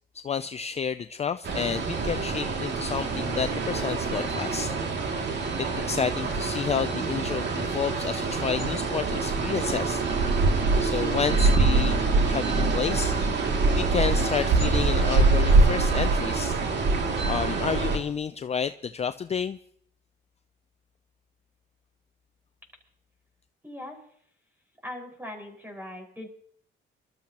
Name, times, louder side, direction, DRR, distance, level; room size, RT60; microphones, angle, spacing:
voice 1, 0.1-4.7 5.6-10.0 10.8-13.2 13.8-16.6 17.3-19.6, left 7 dB, 30° left, 11 dB, 0.4 m, -30 dB
sound 1, 1.4-18.0, right 3 dB, 60° right, 2.4 m, -24 dB
voice 2, 23.6-24.0 24.8-26.3, left 1 dB, 10° right, 3 dB, 5.0 m, -40 dB
25.0 x 13.0 x 2.9 m, 0.63 s
cardioid pair, 90°, 20 cm